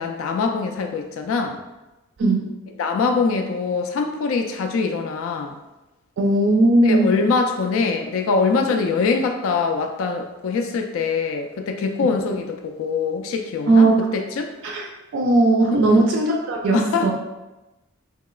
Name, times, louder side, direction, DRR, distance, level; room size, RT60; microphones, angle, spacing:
voice 1, 0.0-1.6 2.8-5.6 6.8-14.5 15.7-16.0 16.7-17.1, left 4 dB, 70° left, 5 dB, 0.3 m, -23 dB
voice 2, 6.2-7.1 13.7-13.9 14.6-14.8 15.1-17.1, right 2 dB, 60° right, 0 dB, 0.4 m, -17 dB
2.9 x 2.8 x 2.3 m, 1.0 s
head